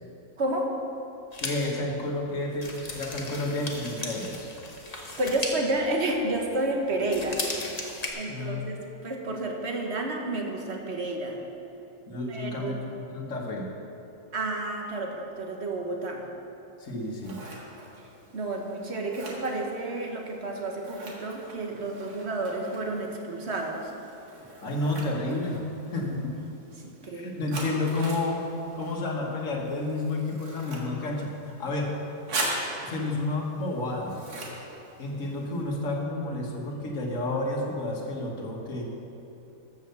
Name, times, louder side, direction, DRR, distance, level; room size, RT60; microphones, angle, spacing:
voice 1, 0.4-0.7 4.9-7.4 8.1-11.4 12.3-12.8 14.3-16.2 18.3-23.9 27.0-27.4, right 2 dB, 45° right, 2 dB, 1.4 m, -30 dB
sound 1, 1.3-6.6 7.0-8.1, left 2 dB, 30° left, 1.1 m, -37 dB
voice 2, 1.4-4.5 8.3-8.6 12.1-13.7 16.8-17.4 24.6-25.6 25.9-26.3 27.1-28.4 28.8-31.9 32.8-34.2 35.0-38.8, left 2 dB, 55° left, -1 dB, 1.9 m, -30 dB
Scissors, 16.8-35.6, right 2 dB, 80° right, 2.2 m, -41 dB
13.5 x 5.7 x 6.9 m, 2.8 s
omnidirectional pair, 1.6 m